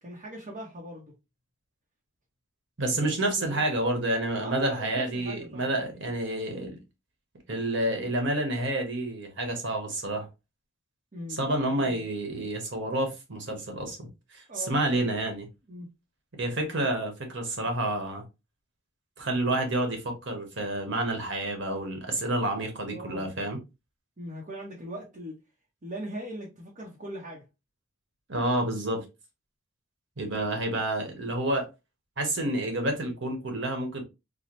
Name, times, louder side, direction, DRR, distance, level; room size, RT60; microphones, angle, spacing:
voice 1, 0.0-1.1 2.9-3.6 4.4-5.9 11.1-11.4 11.7-11.9 14.5-15.1 15.7-15.9 22.9-23.3 24.2-25.4 25.8-27.4, equal, 40° right, 0.8 m, -40 dB
voice 2, 2.8-6.8 7.5-10.3 11.3-15.5 16.4-18.2 19.2-23.6 28.3-29.0 30.2-31.7 32.2-34.0, right 1 dB, 65° right, 1.2 m, -29 dB
4.2 x 2.1 x 3.0 m
head